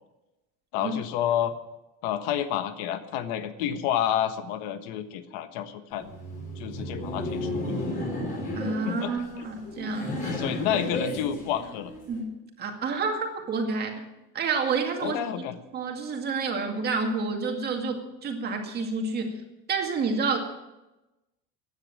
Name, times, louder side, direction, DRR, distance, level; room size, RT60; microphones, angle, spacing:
voice 1, 0.7-1.6 2.0-6.1 6.6-7.8 8.7-9.5 10.3-11.9 15.0-15.6, left 10 dB, 75° left, 10 dB, 1.4 m, -30 dB
Laughter, 5.9-12.2, left 1 dB, 25° left, 5.5 m, -33 dB
voice 2, 8.6-10.3 12.1-12.3 12.6-14.0 14.3-15.2 15.7-19.3 19.7-20.4, right 4 dB, 30° right, 3 dB, 2.2 m, -29 dB
15.5 x 10.0 x 7.5 m, 0.99 s
cardioid pair, 175°, 32 cm